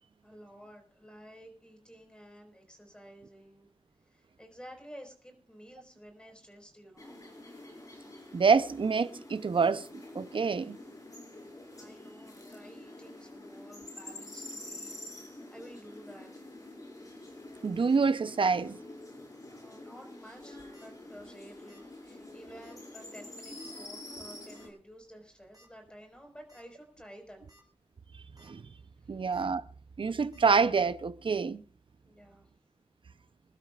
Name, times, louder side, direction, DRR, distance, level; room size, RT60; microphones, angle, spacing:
voice 1, 0.2-3.7 4.0-7.2 11.8-16.5 19.5-27.4 29.1-29.2 32.1-32.5, equal, 10° left, 5.0 m, -52 dB
sound 1, 7.0-24.7, left 1 dB, 35° left, 5.1 m, -47 dB
voice 2, 8.3-9.9 10.1-10.8 17.6-18.8 28.4-28.6 29.1-29.6 30.0-31.6, right 5 dB, 60° right, 0.7 m, -27 dB
sound 2, 20.4-20.9 21.7-21.9 22.2-22.3 22.6-22.8 23.6-23.9 24.5-24.7 25.5-25.7 26.1-26.2 26.5-26.6 27.3-27.6 28.0-28.5 29.3-29.5 30.3-30.5, equal, 40° right, 6.8 m, -60 dB
27.0 x 12.5 x 2.5 m
wide cardioid pair, 85°, 10 cm